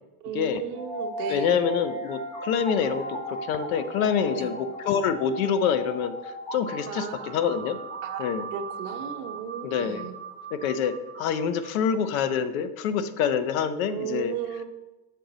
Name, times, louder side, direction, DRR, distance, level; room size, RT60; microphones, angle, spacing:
voice 1, 0.2-1.6 4.3-4.5 6.9-7.4 8.0-10.1 13.9-14.6, right 7 dB, 70° right, 4 dB, 0.9 m, -35 dB
sound 1, 0.7-11.7, right 1 dB, 10° left, 0.3 m, -37 dB
voice 2, 1.3-7.8 8.2-8.4 9.6-10.1 10.5-14.3, left 7 dB, 60° left, 12 dB, 0.6 m, -26 dB
6.5 x 3.9 x 3.9 m, 1.0 s
supercardioid pair, 130°, 48 cm